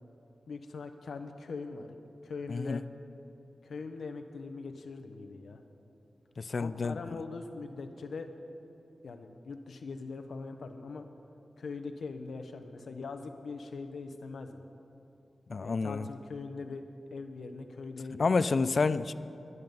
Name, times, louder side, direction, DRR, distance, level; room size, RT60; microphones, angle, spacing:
voice 1, 0.5-2.0 2.2-2.8 3.6-5.6 6.6-8.3 9.0-11.1 11.6-14.6 15.6-16.9 17.1-18.7, left 4 dB, 85° left, 6 dB, 1.1 m, -41 dB
voice 2, 2.5-2.8 6.4-7.0 15.5-16.1 18.2-19.1, left 4 dB, 45° left, 15 dB, 0.4 m, -29 dB
22.5 x 9.7 x 5.5 m, 2.9 s
wide cardioid pair, 165°, 0 cm